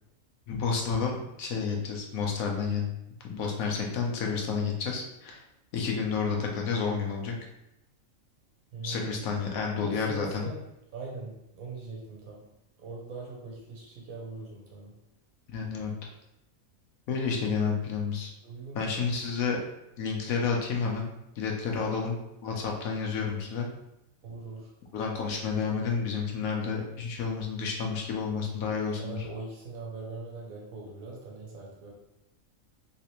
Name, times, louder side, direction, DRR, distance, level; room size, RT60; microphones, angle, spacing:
voice 1, 0.5-2.9 3.3-5.4 5.7-7.3 8.8-10.5 15.5-15.9 17.1-18.3 18.7-19.6 20.0-22.2 22.4-23.7 24.9-29.3, left 5 dB, 85° left, 0 dB, 1.2 m, -30 dB
voice 2, 8.7-9.2 9.8-10.6 10.9-12.4 12.8-15.0 18.4-18.9 21.8-22.0 24.2-24.7 29.0-31.9, right 3 dB, 85° right, -3 dB, 1.3 m, -41 dB
3.3 x 3.2 x 2.9 m, 0.87 s
omnidirectional pair, 1.4 m